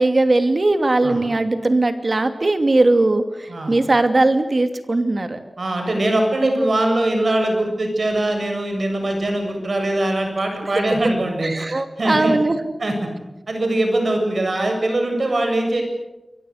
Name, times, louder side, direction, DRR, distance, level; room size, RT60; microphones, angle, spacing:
voice 1, 0.0-5.4 11.4-12.6, right 2 dB, 50° right, 7 dB, 2.7 m, -19 dB
voice 2, 5.6-11.5 12.0-12.3 12.8-13.1 13.5-15.8, right 1 dB, 70° right, 4 dB, 7.7 m, -21 dB
28.5 x 23.0 x 6.7 m, 1.0 s
wide cardioid pair, 65°, 0 cm